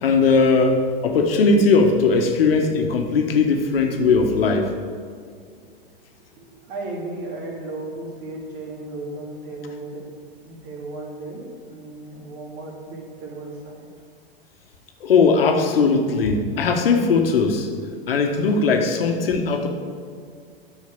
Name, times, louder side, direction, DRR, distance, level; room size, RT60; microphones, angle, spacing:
voice 1, 0.0-4.7 15.0-17.7 18.1-19.7, left 4 dB, 70° left, 4 dB, 1.4 m, -19 dB
voice 2, 6.4-10.2 10.4-13.9, right 2 dB, 50° right, -2 dB, 2.9 m, -35 dB
9.5 x 6.4 x 6.9 m, 2.1 s
hypercardioid pair, 100°, 30 cm